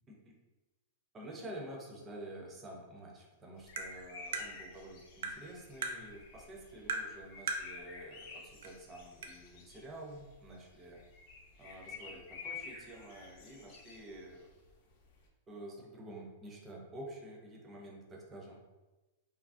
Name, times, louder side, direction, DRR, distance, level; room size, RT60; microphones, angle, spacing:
voice 1, 1.1-11.0 11.6-14.5 15.5-18.6, right 1 dB, 15° right, -1 dB, 0.4 m, -49 dB
sound 1, 3.6-15.3, left 4 dB, 45° left, 0.5 m, -51 dB
Tap, 3.8-3.9 4.3-4.5 5.2-5.4 5.8-6.0 6.9-7.1 7.5-7.7 8.6-8.7 9.2-9.3, right 3 dB, 80° right, 0.4 m, -36 dB
2.9 x 2.3 x 2.4 m, 1.1 s
supercardioid pair, 160°, 0 cm